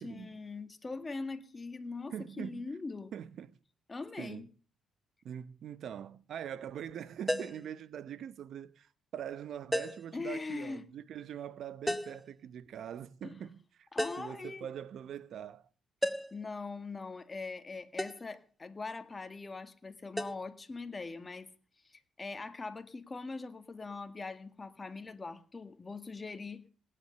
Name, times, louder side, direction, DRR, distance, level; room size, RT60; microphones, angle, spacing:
voice 1, 0.0-3.1 3.9-4.5 10.1-10.8 13.2-13.4 13.9-14.7 16.3-21.5 21.8-26.6, left 3 dB, 25° left, 1.9 m, -42 dB
voice 2, 2.1-2.7 3.1-3.5 4.2-4.4 5.2-13.9 14.2-15.7, right 9 dB, 65° right, 0.9 m, -43 dB
sound 1, 7.3-7.7 9.7-10.1 11.9-12.2 14.0-14.4 16.0-16.4 18.0-18.3 20.2-20.3, equal, ahead, 1.1 m, -34 dB
18.0 x 10.0 x 6.8 m
cardioid pair, 90°, 0 cm